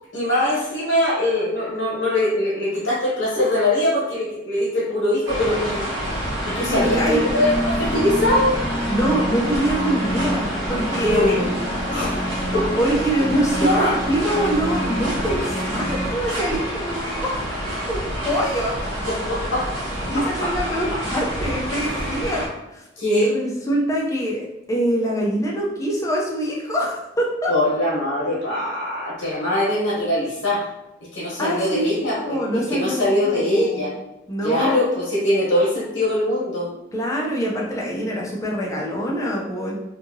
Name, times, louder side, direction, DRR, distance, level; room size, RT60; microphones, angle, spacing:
voice 1, 0.1-5.8 6.4-8.6 11.0-11.5 11.9-12.7 13.6-13.9 19.1-19.7 20.1-20.5 21.8-22.1 23.0-23.4 27.5-30.7 31.1-32.4 32.7-33.9 34.4-36.7, left 1 dB, 85° left, -8 dB, 1.0 m, -22 dB
sound 1, 5.3-22.5, equal, 90° right, 1.3 m, -28 dB
voice 2, 6.7-7.2 8.9-11.3 12.8-17.4 17.9-18.8 20.1-22.9 23.3-27.5 31.4-31.8 32.2-33.9 34.3-34.8 36.9-39.7, right 1 dB, 15° left, -3 dB, 0.5 m, -24 dB
sound 2, 6.7-16.1, equal, 35° right, 0.7 m, -28 dB
2.8 x 2.5 x 2.6 m, 0.92 s
head